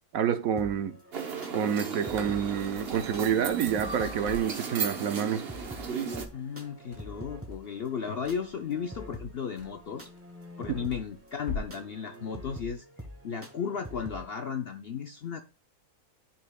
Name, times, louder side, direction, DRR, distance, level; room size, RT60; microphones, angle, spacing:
voice 1, 0.1-1.0 1.5-5.4, right 8 dB, 70° right, 1.1 m, -28 dB
sound 1, 0.6-14.3, equal, 10° right, 0.9 m, -46 dB
sound 2, 1.1-6.3, right 6 dB, 45° right, 1.1 m, -36 dB
Crackle, 1.9-11.9, left 4 dB, 35° left, 2.4 m, -46 dB
voice 2, 6.3-10.1 10.6-12.8 13.2-15.4, left 7 dB, 60° left, 0.6 m, -35 dB
12.5 x 4.3 x 2.3 m
omnidirectional pair, 1.6 m